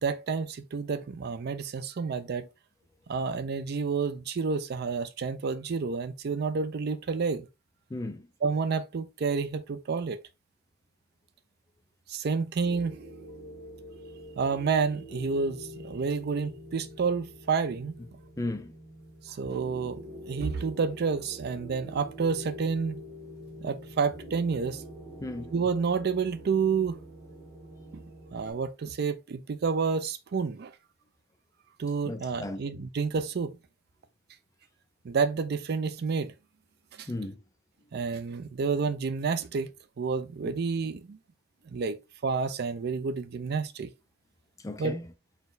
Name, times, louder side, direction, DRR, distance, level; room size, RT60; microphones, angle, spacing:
voice 1, 0.0-2.5 3.1-7.5 8.4-10.2 12.1-13.0 14.4-17.9 19.2-20.0 20.3-23.0 23.6-24.8 25.5-27.0 27.9-28.0 28.3-30.7 31.8-33.6 35.0-36.3 37.0-37.1 37.9-39.7 40.0-41.2 41.7-43.9 44.8-44.9, right 5 dB, 55° right, 0.4 m, -29 dB
voice 2, 7.9-8.3 18.4-18.7 25.2-25.5 32.0-32.6 37.1-37.4 44.6-45.1, left 2 dB, 15° left, 0.4 m, -35 dB
sound 1, 12.6-28.5, equal, 90° right, 1.9 m, -45 dB
4.1 x 2.2 x 3.8 m
head